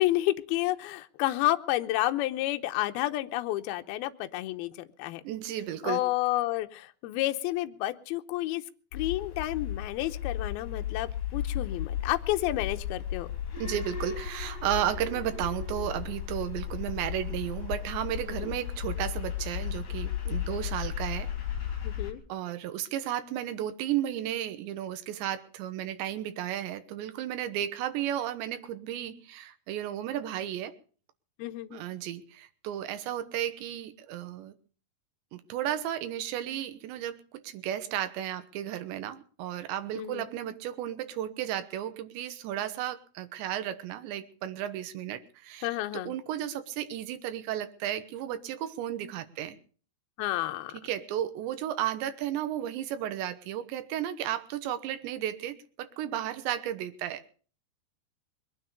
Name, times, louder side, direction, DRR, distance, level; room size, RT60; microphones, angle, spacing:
voice 1, 0.0-5.2 5.9-8.6 8.9-13.3 18.4-18.5 21.8-22.2 31.4-31.8 40.0-40.2 45.6-46.1 50.2-50.8, left 16 dB, 75° left, 9 dB, 2.4 m, -30 dB
voice 2, 5.2-6.0 13.6-21.3 21.6-21.8 22.3-30.8 31.7-34.6 35.3-45.7 45.9-49.6 50.7-57.3, right 11 dB, 85° right, 10 dB, 3.4 m, -34 dB
sound 1, 8.9-22.1, left 10 dB, 45° left, 4.0 m, -35 dB
21.5 x 9.5 x 6.8 m, 0.43 s
omnidirectional pair, 5.1 m